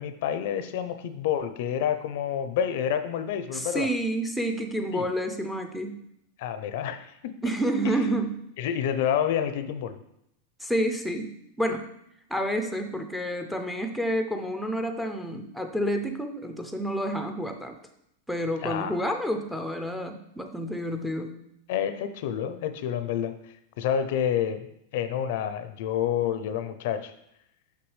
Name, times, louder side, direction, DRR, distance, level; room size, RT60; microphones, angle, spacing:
voice 1, 0.0-3.9 4.9-5.1 6.4-7.4 7.8-8.0 8.6-10.0 18.6-18.9 21.7-24.7 24.9-27.1, left 9 dB, 60° left, 10 dB, 0.5 m, -29 dB
voice 2, 3.5-6.0 7.4-8.4 10.6-11.9 12.3-17.7 18.3-21.4, equal, ahead, 4 dB, 0.4 m, -29 dB
5.9 x 5.8 x 3.2 m, 0.77 s
supercardioid pair, 155°, 0 cm